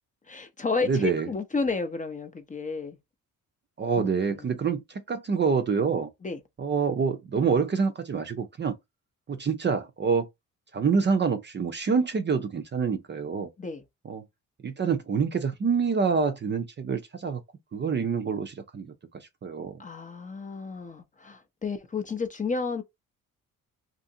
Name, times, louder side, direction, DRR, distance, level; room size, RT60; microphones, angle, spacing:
voice 1, 0.3-3.0 4.0-4.5 6.2-6.4 13.6-13.8 19.8-22.8, left 4 dB, 20° left, 0.5 m, -32 dB
voice 2, 0.8-1.3 3.8-6.1 6.6-8.8 9.3-10.3 10.7-13.5 14.0-14.2 14.6-17.4 17.7-19.8, right 5 dB, 30° right, 0.5 m, -26 dB
2.8 x 2.5 x 2.6 m
cardioid pair, 85°, 36 cm